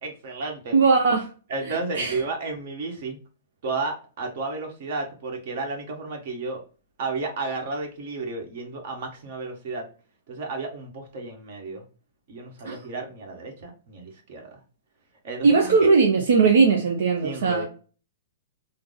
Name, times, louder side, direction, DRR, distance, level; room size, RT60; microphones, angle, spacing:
voice 1, 0.0-0.8 1.5-3.2 3.6-6.6 7.0-9.8 10.3-11.8 12.3-14.4 15.2-15.9 17.2-17.6, right 3 dB, 55° right, 1.3 m, -32 dB
voice 2, 0.7-1.3 1.7-2.2 12.6-12.8 15.4-17.6, right 4 dB, 75° right, 0.7 m, -19 dB
3.6 x 2.0 x 3.7 m
hypercardioid pair, 145°, 0 cm